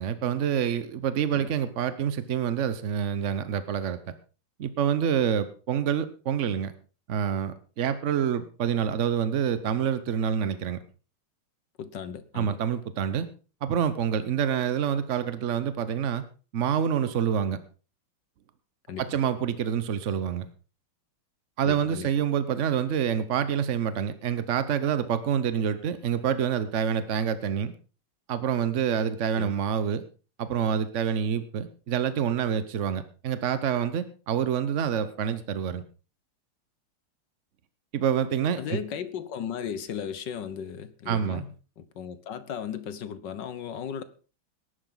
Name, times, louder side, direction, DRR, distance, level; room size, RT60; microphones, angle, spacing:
voice 1, 0.0-4.1 4.6-6.7 7.1-10.8 12.3-13.3 13.6-16.2 16.5-17.6 19.0-20.5 21.6-27.7 28.3-30.0 30.4-35.8 37.9-38.8 41.1-41.4, right 8 dB, 60° right, 13 dB, 0.7 m, -27 dB
voice 2, 11.8-12.6 18.9-19.2 21.6-22.1 29.3-29.5 38.6-44.0, left 8 dB, 60° left, 13 dB, 1.6 m, -36 dB
18.5 x 11.0 x 3.9 m, 0.35 s
omnidirectional pair, 2.3 m